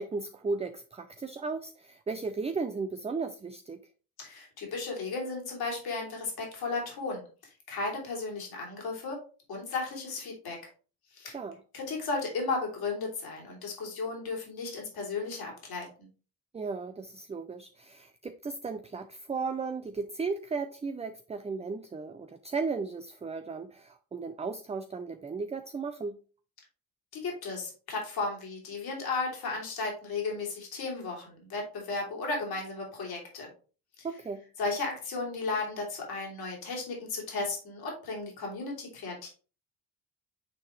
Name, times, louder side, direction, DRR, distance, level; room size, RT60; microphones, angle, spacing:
voice 1, 0.0-3.8 11.2-11.6 16.5-26.2 34.0-34.4, right 4 dB, 15° right, 0.5 m, -35 dB
voice 2, 4.2-9.2 9.5-10.6 11.1-11.4 11.7-16.1 27.1-33.5 34.0-34.1 34.6-39.3, left 3 dB, 60° left, 3.0 m, -35 dB
9.0 x 3.8 x 3.2 m
hypercardioid pair, 60°, 41 cm